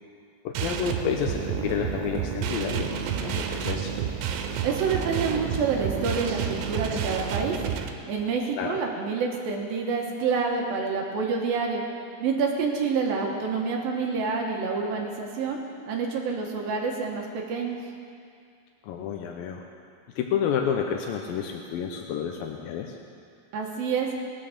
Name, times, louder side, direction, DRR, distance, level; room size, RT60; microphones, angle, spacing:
voice 1, 0.4-3.9 8.6-8.8 18.8-19.6 20.2-23.0, left 7 dB, 85° left, 3 dB, 2.1 m, -30 dB
sound 1, 0.5-7.9, right 8 dB, 90° right, 3.1 m, -30 dB
voice 2, 4.6-7.5 8.1-11.8 12.2-15.6 15.9-17.8 23.5-24.1, right 5 dB, 65° right, 0 dB, 2.7 m, -27 dB
18.5 x 9.3 x 6.6 m, 2.3 s
omnidirectional pair, 5.1 m